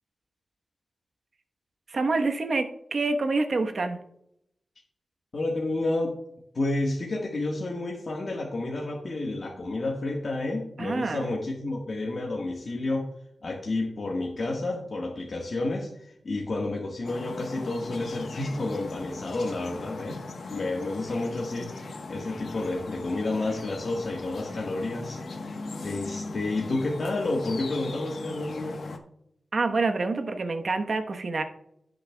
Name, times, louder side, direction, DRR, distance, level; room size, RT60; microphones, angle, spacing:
voice 1, 1.9-4.0 10.8-11.3 29.5-31.4, right 3 dB, 60° right, 6 dB, 1.1 m, -27 dB
voice 2, 5.3-6.1 6.5-13.1 13.4-20.2 20.5-25.2 25.5-25.6 25.8-28.8, left 2 dB, 60° left, -2 dB, 1.5 m, -30 dB
sound 1, 17.0-29.0, left 3 dB, 85° left, 1.2 m, -39 dB
17.0 x 6.6 x 2.3 m, 0.75 s
wide cardioid pair, 90°, 0 cm